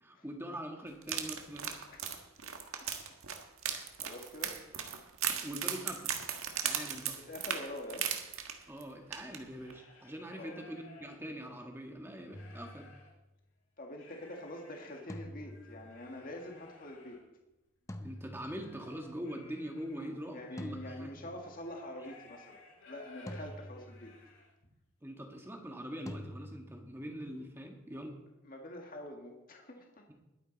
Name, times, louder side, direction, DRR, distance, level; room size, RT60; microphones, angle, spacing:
voice 1, 0.0-1.7 5.3-6.1 6.6-7.2 8.7-12.9 18.0-21.1 25.0-28.2, equal, 10° right, 2 dB, 1.6 m, -43 dB
sound 1, 1.0-8.8 9.1-9.4 9.7-9.8, right 8 dB, 90° right, 1.6 m, -37 dB
voice 2, 3.6-4.6 7.2-8.1 10.3-10.6 13.8-17.2 19.9-24.1 28.4-30.1, left 1 dB, 40° left, 1 dB, 1.9 m, -46 dB
sound 2, 6.5-7.2 7.7-7.8 8.0-11.6 12.1-13.1 13.9-24.7, left 3 dB, 80° left, 5.8 m, -59 dB
sound 3, 12.3-13.3 15.1-16.2 17.9-19.0 20.6-21.7 23.3-24.4 26.1-26.9, left 1 dB, 15° left, 0.7 m, -47 dB
21.0 x 9.3 x 4.1 m, 0.96 s
head